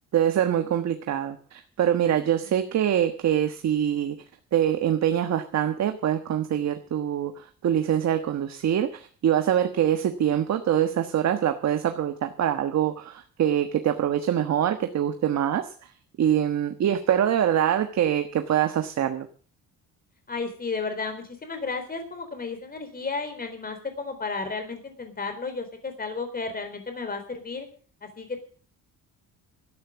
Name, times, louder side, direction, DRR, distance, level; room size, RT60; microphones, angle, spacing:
voice 1, 0.1-4.2 4.5-15.9 16.2-19.3, right 10 dB, 50° right, 7 dB, 1.4 m, -24 dB
voice 2, 20.3-27.7 28.0-28.4, left 4 dB, 25° left, 7 dB, 3.9 m, -33 dB
13.5 x 9.6 x 7.3 m, 0.43 s
cardioid pair, 115°, 34 cm